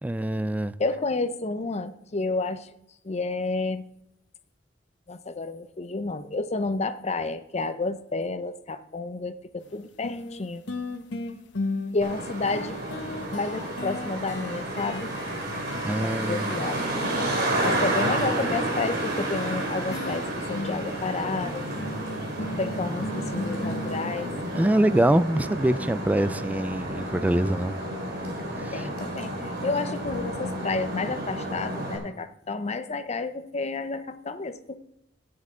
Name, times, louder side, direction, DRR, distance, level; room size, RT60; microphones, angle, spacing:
voice 1, 0.0-0.7 15.8-16.5 24.6-27.7 28.6-28.8, right 1 dB, 10° right, 15 dB, 0.3 m, -24 dB
voice 2, 0.8-2.7 3.0-3.8 5.1-10.6 11.9-12.8 13.3-15.1 16.0-16.9 17.6-21.6 22.4-24.3 28.7-34.8, left 3 dB, 35° left, 11 dB, 0.6 m, -30 dB
sound 1, 9.6-9.7 10.0-17.3 18.8-24.7, left 2 dB, 65° left, 0.9 m, -36 dB
Traffic noise roadway noise, 12.0-32.0, right 1 dB, 60° right, 2.5 m, -31 dB
14.0 x 9.7 x 3.7 m, 0.78 s
head